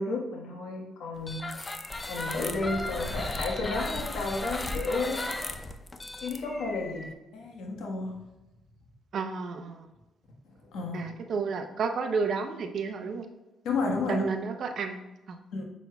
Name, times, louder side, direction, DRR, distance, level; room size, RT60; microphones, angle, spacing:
voice 1, 0.0-1.5 2.1-5.5 6.2-7.0 7.3-8.3 10.5-11.1 13.6-14.3 15.5-15.6, left 3 dB, 80° left, 1 dB, 1.3 m, -32 dB
sound 1, 1.2-7.1, left 2 dB, 25° left, 0.6 m, -35 dB
voice 2, 9.1-9.9 10.9-13.3 14.1-15.4, right 5 dB, 60° right, 6 dB, 0.7 m, -32 dB
7.0 x 6.1 x 2.3 m, 1.0 s
cardioid pair, 90°, 0 cm